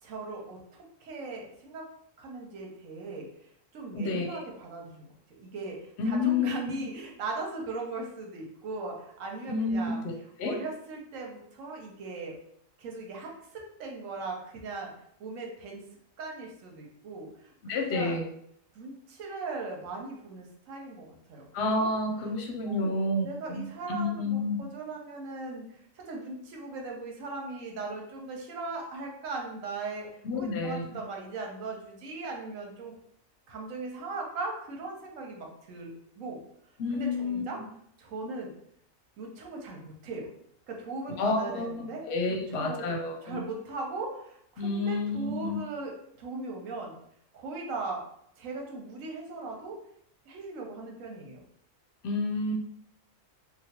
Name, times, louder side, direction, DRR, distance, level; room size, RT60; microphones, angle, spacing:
voice 1, 0.0-1.9 2.2-3.3 3.7-10.0 10.4-12.3 12.8-14.9 15.2-15.8 16.2-18.3 18.7-21.9 22.7-30.1 30.3-33.0 33.5-36.4 36.9-37.6 38.0-38.5 39.2-40.3 40.7-42.0 42.3-46.9 47.3-48.0 48.4-49.8 50.3-51.4, right 3 dB, 80° right, 0 dB, 1.1 m, -39 dB
voice 2, 3.9-4.3 6.0-6.7 9.5-9.9 10.4-10.6 17.6-18.2 21.5-24.6 30.2-30.8 36.8-37.4 41.2-43.4 44.6-45.6 52.0-52.5, left 3 dB, 60° left, 1 dB, 0.8 m, -29 dB
3.1 x 2.3 x 2.8 m, 0.70 s
omnidirectional pair, 1.4 m